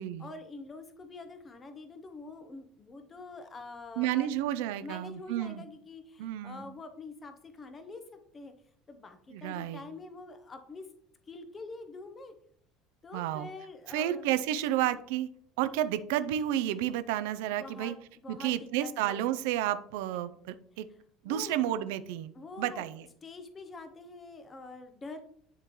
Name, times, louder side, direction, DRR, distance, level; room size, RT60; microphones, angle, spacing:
voice 1, 0.0-4.3 4.8-8.5 8.9-10.9 11.3-12.3 13.0-14.3 17.6-18.0 18.2-18.5 18.8-19.2 21.3-21.6 22.3-22.9 23.2-25.2, left 3 dB, 25° left, 7 dB, 0.7 m, -45 dB
voice 2, 4.0-5.6 6.2-6.7 9.3-9.8 13.1-13.5 13.9-15.3 15.6-17.9 18.3-20.9 21.2-22.3 22.6-23.0, right 12 dB, 85° right, 12 dB, 0.4 m, -31 dB
11.0 x 3.7 x 3.0 m, 0.64 s
supercardioid pair, 120°, 0 cm